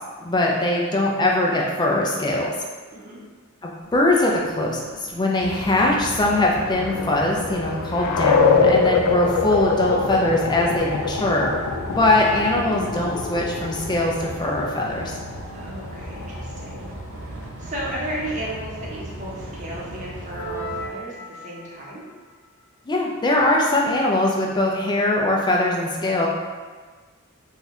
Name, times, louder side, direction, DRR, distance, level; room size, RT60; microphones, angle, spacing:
voice 1, 0.2-2.5 3.6-4.8 5.1-11.5 11.9-15.1 22.9-26.3, left 1 dB, 20° left, -2 dB, 0.4 m, -21 dB
sound 1, 5.4-20.9, right 1 dB, 65° right, 0.5 m, -37 dB
sound 2, 5.6-17.0, left 5 dB, 85° left, 0.3 m, -25 dB
voice 2, 15.5-16.9 17.2-22.1, right 1 dB, 35° right, -5 dB, 0.8 m, -34 dB
sound 3, 20.3-22.0, equal, 65° left, 0.9 m, -35 dB
2.6 x 2.3 x 4.0 m, 1.4 s
head